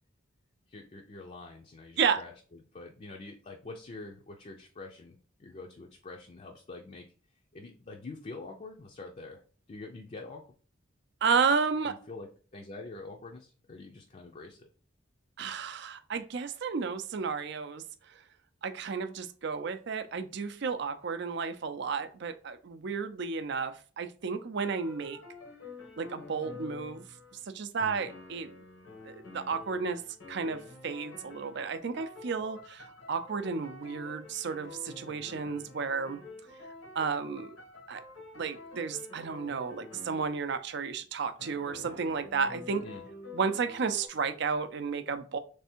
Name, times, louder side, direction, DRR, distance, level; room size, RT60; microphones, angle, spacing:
voice 1, 0.7-7.1 7.5-9.4 9.7-10.5 11.8-14.7 27.8-28.1 42.8-43.0, left 3 dB, 35° left, 0.5 m, -46 dB
voice 2, 11.2-12.0 15.4-17.8 18.6-25.2 26.0-27.0 27.5-28.5 29.0-30.0 30.3-36.2 37.0-37.6 37.9-38.0 38.4-42.8 43.3-45.4, right 5 dB, 60° right, 0.5 m, -32 dB
sound 1, 24.6-27.4 28.1-40.5 41.4-44.1, left 3 dB, 90° left, 1.2 m, -48 dB
3.4 x 3.4 x 4.3 m
head